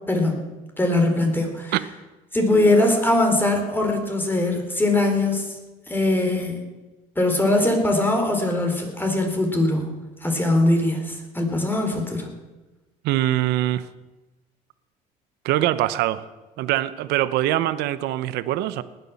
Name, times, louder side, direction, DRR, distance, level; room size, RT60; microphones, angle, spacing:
voice 1, 0.1-0.5 0.8-1.7 2.3-5.6 5.9-6.6 7.2-9.9 10.2-12.3, left 2 dB, 10° left, 3 dB, 4.1 m, -21 dB
voice 2, 13.0-13.9 15.4-16.2 16.6-18.8, right 14 dB, 70° right, 15 dB, 1.0 m, -23 dB
19.5 x 9.5 x 7.2 m, 1.1 s
supercardioid pair, 95°, 17 cm